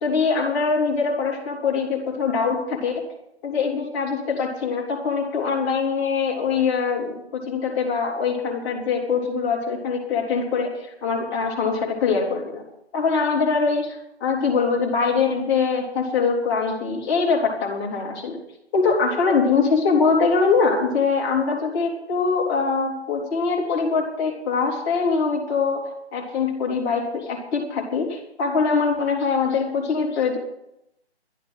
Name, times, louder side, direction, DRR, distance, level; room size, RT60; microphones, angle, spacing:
voice 1, 0.0-3.0 3.4-12.6 12.9-18.4 18.7-30.4, left 5 dB, 20° left, -3 dB, 3.0 m, -23 dB
12.5 x 10.5 x 7.6 m, 0.82 s
figure-of-eight pair, 150°, 33 cm